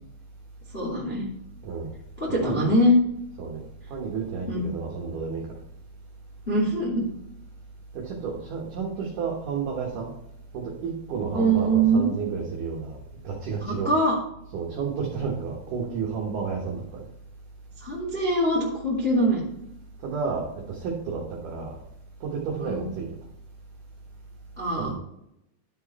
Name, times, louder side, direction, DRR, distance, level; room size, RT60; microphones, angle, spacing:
voice 1, 0.7-1.3 2.2-3.0 4.5-4.7 6.5-7.0 11.3-12.1 13.6-14.1 17.8-19.4 22.6-22.9 24.6-24.9, right 1 dB, 80° left, -5 dB, 0.5 m, -23 dB
voice 2, 3.9-5.6 7.9-10.1 10.5-13.9 14.5-17.0 20.0-21.8 22.2-23.1 24.8-24.9, right 5 dB, 65° right, -3 dB, 2.4 m, -31 dB
12.5 x 4.7 x 4.2 m, 0.81 s
omnidirectional pair, 5.0 m